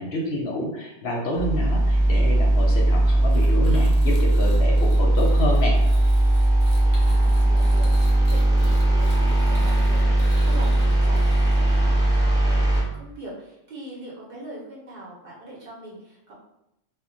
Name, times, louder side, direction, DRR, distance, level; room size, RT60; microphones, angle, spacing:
voice 1, 0.0-5.7, left 1 dB, 65° left, -1 dB, 0.7 m, -28 dB
sound 1, 1.4-12.8, right 1 dB, 5° right, 0.6 m, -19 dB
sound 2, 3.3-11.8, equal, 80° right, 1.1 m, -43 dB
voice 2, 6.9-16.3, right 1 dB, 55° right, -5 dB, 0.9 m, -41 dB
2.1 x 2.1 x 3.7 m, 0.84 s
omnidirectional pair, 1.3 m